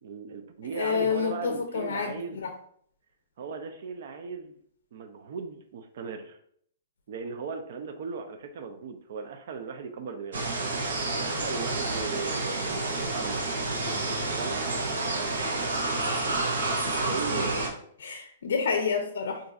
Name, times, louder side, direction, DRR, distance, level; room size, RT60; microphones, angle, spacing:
voice 1, 0.0-2.4 3.4-4.6 4.9-6.4 7.1-10.4 11.1-13.6 14.4-14.8 16.8-17.8, right 5 dB, 55° right, 6 dB, 0.5 m, -37 dB
voice 2, 0.7-2.5 16.9-17.0 17.3-17.4 18.0-19.4, left 6 dB, 80° left, 4 dB, 0.4 m, -29 dB
sound 1, 10.3-17.7, right 2 dB, 90° right, 0.8 m, -29 dB
2.5 x 2.3 x 4.0 m, 0.64 s
hypercardioid pair, 165°, 0 cm